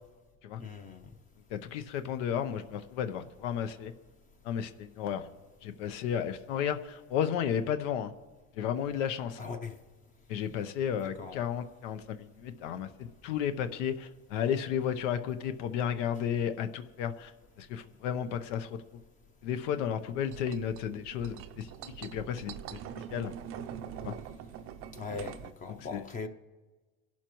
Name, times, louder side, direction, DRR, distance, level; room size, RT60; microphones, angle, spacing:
voice 1, 0.6-1.1 9.4-9.7 11.0-11.4 24.9-26.3, left 5 dB, 20° left, 6 dB, 0.6 m, -40 dB
voice 2, 1.5-3.9 4.4-5.3 5.6-8.1 8.5-9.5 10.3-17.3 17.6-19.0 19.4-23.3 24.0-24.1 25.7-26.0, left 8 dB, 85° left, 9 dB, 1.0 m, -33 dB
sound 1, 20.3-25.5, right 9 dB, 40° right, 0.5 m, -43 dB
25.5 x 11.5 x 3.1 m, 1.3 s
cardioid pair, 165°, 35 cm